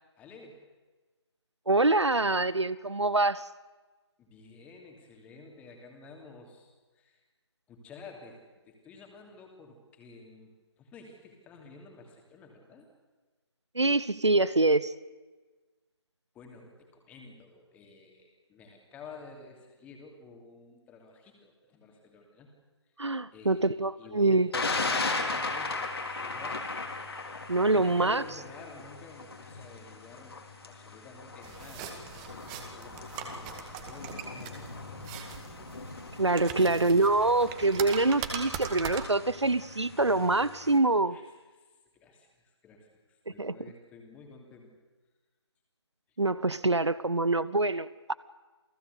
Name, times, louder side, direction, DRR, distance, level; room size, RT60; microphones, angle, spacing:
voice 1, 0.2-0.6 4.2-6.7 6.9-7.2 7.7-8.4 8.7-12.9 16.3-22.5 23.3-26.6 27.7-30.4 30.7-34.7 36.5-37.0 41.0-41.3 41.6-41.7 41.9-44.7, left 3 dB, 10° left, 2 dB, 2.9 m, -51 dB
voice 2, 1.7-3.4 13.7-14.9 23.0-24.5 27.5-28.2 36.2-41.2 43.4-43.5 46.2-48.1, right 2 dB, 80° right, 18 dB, 1.0 m, -25 dB
Thunder, 24.5-40.8, left 3 dB, 60° left, 3.7 m, -38 dB
sound 1, 31.4-39.1, right 7 dB, 15° right, 2.0 m, -41 dB
28.5 x 17.5 x 8.3 m, 1.3 s
figure-of-eight pair, 150°, 15 cm